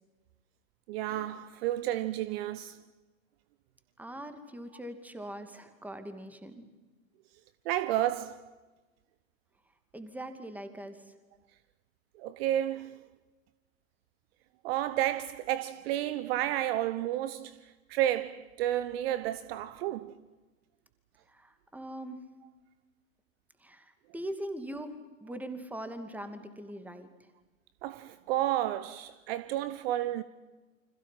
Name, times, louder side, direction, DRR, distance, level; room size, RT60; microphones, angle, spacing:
voice 1, 0.9-2.8 7.6-8.5 12.2-13.0 14.6-20.2 27.8-30.2, right 13 dB, 45° right, 1.0 m, -31 dB
voice 2, 4.0-6.7 9.9-11.2 21.3-22.2 23.6-24.9 25.2-27.1, right 1 dB, 5° right, 2.5 m, -41 dB
29.5 x 26.0 x 5.8 m
figure-of-eight pair, 95°, 41 cm